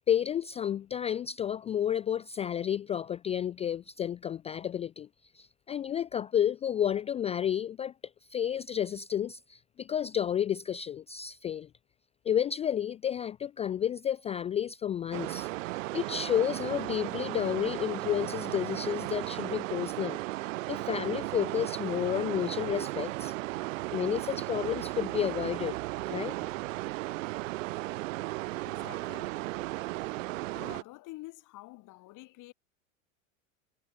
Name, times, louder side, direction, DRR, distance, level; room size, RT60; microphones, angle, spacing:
voice 1, 0.1-5.1 5.3-7.9 8.3-11.7 12.2-15.5 15.9-20.2 20.7-23.3 23.9-25.8 26.1-26.4, left 9 dB, 15° left, 0.3 m, -31 dB
sound 1, 15.1-30.8, right 20 dB, 70° right, 2.8 m, -35 dB
voice 2, 28.7-29.4 30.5-32.5, left 19 dB, 50° left, 6.6 m, -48 dB
hypercardioid pair, 105°, 40 cm